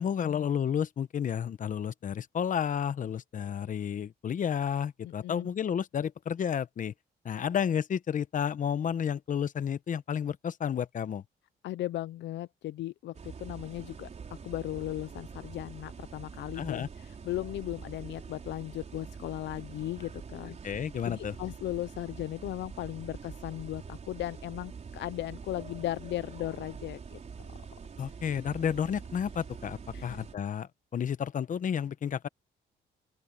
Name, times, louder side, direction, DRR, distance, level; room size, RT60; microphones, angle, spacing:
voice 1, 0.0-6.9 7.2-11.2 16.5-16.9 20.6-21.3 28.0-32.3, left 8 dB, 45° left, 0.9 m, -31 dB
voice 2, 5.0-5.5 11.6-14.1 14.4-20.6 21.1-27.2 29.9-30.2, left 14 dB, 80° left, 0.5 m, -37 dB
sound 1, 13.1-30.3, right 6 dB, 40° right, 4.7 m, -45 dB
open air
cardioid pair, 130°, 18 cm